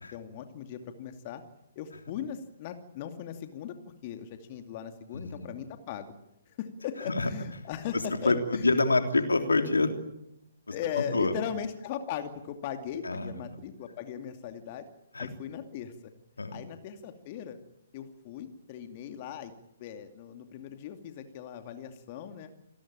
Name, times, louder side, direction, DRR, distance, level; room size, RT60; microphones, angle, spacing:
voice 1, 0.0-1.4 1.8-3.8 4.0-6.1 6.5-8.8 9.2-9.3 10.7-14.9 15.2-16.1 16.5-17.6 17.9-19.5 19.8-22.5, left 9 dB, 35° left, 7 dB, 2.5 m, -38 dB
voice 2, 5.1-5.5 7.1-7.3 8.2-9.9 11.0-11.3 13.0-13.5 15.1-15.3 16.4-16.6, left 3 dB, 75° left, 6 dB, 3.3 m, -26 dB
27.5 x 19.5 x 8.9 m, 0.85 s
figure-of-eight pair, 130°, 0 cm